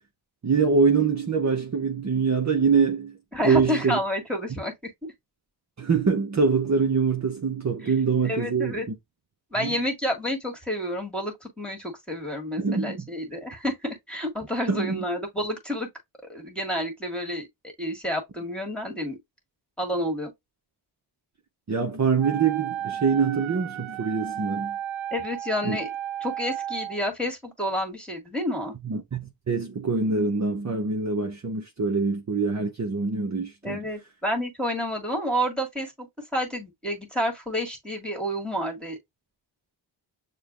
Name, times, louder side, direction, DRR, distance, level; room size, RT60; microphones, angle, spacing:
voice 1, 0.4-3.2 3.4-4.0 5.8-9.0 9.6-9.8 12.6-13.0 14.7-15.0 21.7-24.8 25.6-25.8 28.8-33.8, right 5 dB, 35° right, 0.8 m, -24 dB
voice 2, 3.3-4.7 7.8-7.9 8.2-8.9 9.5-15.9 16.3-19.2 19.8-20.3 25.1-25.9 26.2-28.7 33.6-36.1 36.3-39.0, equal, ahead, 1.7 m, -29 dB
Wind instrument woodwind instrument, 22.2-27.0, right 10 dB, 80° right, 0.6 m, -34 dB
6.6 x 2.2 x 2.4 m
cardioid pair, 55°, 47 cm